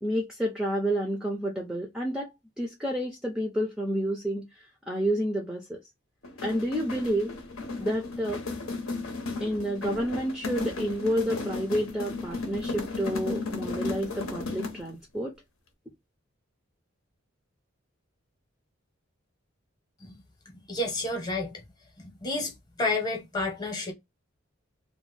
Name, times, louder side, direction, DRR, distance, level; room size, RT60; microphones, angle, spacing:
voice 1, 0.0-5.8 6.4-7.3 7.8-8.4 9.4-15.3, equal, 5° right, 0.4 m, -30 dB
sound 1, 6.2-14.9, left 3 dB, 90° left, 0.8 m, -35 dB
voice 2, 20.5-21.6 22.0-23.9, left 2 dB, 20° left, 0.7 m, -31 dB
2.5 x 2.1 x 3.1 m
head